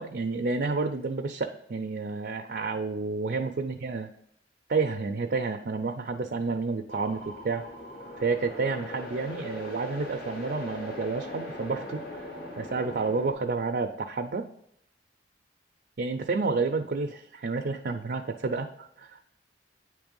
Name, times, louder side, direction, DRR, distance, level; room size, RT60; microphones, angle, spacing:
voice 1, 0.0-4.1 4.7-7.6 8.2-12.2 12.6-14.5 16.0-19.2, right 4 dB, 55° right, 4 dB, 0.5 m, -30 dB
sound 1, 6.9-13.3, left 1 dB, 55° left, 1.6 m, -40 dB
8.8 x 3.2 x 5.2 m, 0.72 s
head